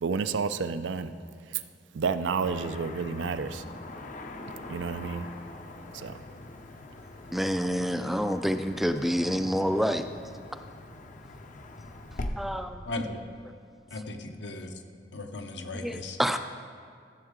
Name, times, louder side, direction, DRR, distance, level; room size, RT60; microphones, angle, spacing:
voice 1, 0.0-1.1 1.4-1.6 1.9-3.6 4.7-5.3 5.9-6.2, right 5 dB, 80° right, 11 dB, 0.4 m, -30 dB
Car passing by / Traffic noise roadway noise, 2.4-12.3, left 2 dB, 45° left, 0.6 m, -43 dB
voice 2, 7.3-10.1 12.4-12.8 15.8-16.4, equal, ahead, 8 dB, 0.3 m, -27 dB
voice 3, 12.8-13.2 13.9-14.8 15.1-16.2, left 2 dB, 70° left, 5 dB, 0.9 m, -37 dB
14.0 x 7.3 x 3.7 m, 2.3 s
head